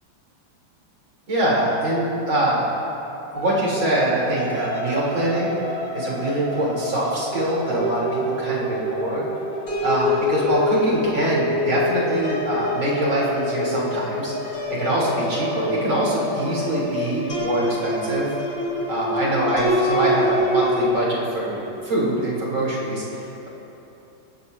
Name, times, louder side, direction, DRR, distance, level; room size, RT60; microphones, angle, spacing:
voice 1, 1.3-2.6 3.3-5.5 5.9-9.2 9.8-14.3 14.7-18.3 18.9-23.5, right 1 dB, 80° right, -6 dB, 4.5 m, -24 dB
sound 1, 3.3-20.9, left 1 dB, 45° left, 2.8 m, -26 dB
22.0 x 15.5 x 2.8 m, 2.9 s
omnidirectional pair, 2.1 m